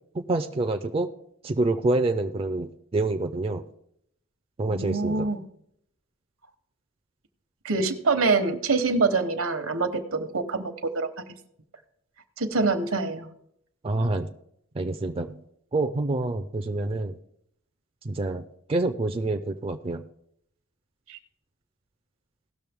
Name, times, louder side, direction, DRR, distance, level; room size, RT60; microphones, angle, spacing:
voice 1, 0.1-1.1 1.4-3.6 4.6-5.3 13.8-14.3 14.7-15.4 15.7-17.1 18.0-18.4 18.7-20.0, right 2 dB, 25° right, 6 dB, 0.4 m, -27 dB
voice 2, 4.7-5.4 7.6-11.1 12.4-13.3 21.1-21.2, right 3 dB, 75° right, 9 dB, 1.0 m, -25 dB
17.0 x 6.4 x 3.5 m, 0.73 s
head